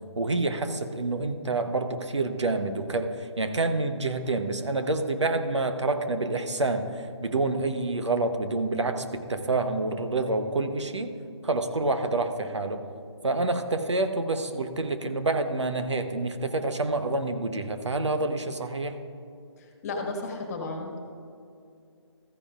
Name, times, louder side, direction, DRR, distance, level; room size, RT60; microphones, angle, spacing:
voice 1, 0.2-11.2 11.4-12.8 13.2-19.0, right 2 dB, 80° right, 7 dB, 1.0 m, -28 dB
voice 2, 19.8-21.0, left 2 dB, 35° left, 1 dB, 1.5 m, -33 dB
14.0 x 9.9 x 2.5 m, 2.5 s
figure-of-eight pair, 150°, 15 cm